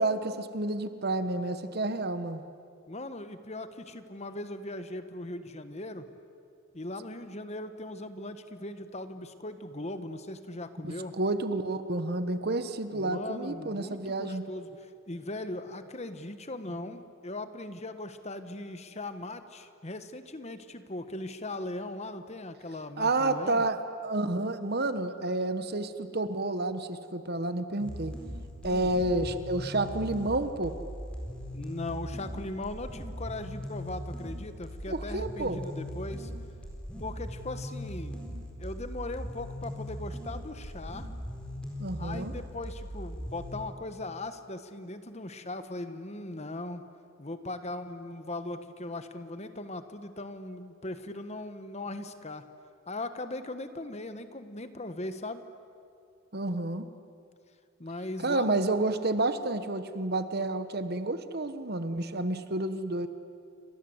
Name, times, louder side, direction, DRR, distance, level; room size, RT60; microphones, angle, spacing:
voice 1, 0.0-2.4 10.8-14.4 23.0-28.1 28.6-30.7 34.9-35.6 41.8-42.3 56.3-56.8 58.2-63.1, right 2 dB, 50° right, 11 dB, 1.3 m, -30 dB
voice 2, 2.9-6.1 6.7-11.1 12.9-23.6 28.6-28.9 31.5-36.3 37.0-38.2 38.6-41.1 42.0-46.8 47.2-52.4 52.9-55.4 57.8-58.6, left 2 dB, 30° left, 10 dB, 1.3 m, -39 dB
sound 1, 27.8-43.6, equal, 5° left, 4.3 m, -39 dB
28.5 x 25.5 x 8.0 m, 2.4 s
head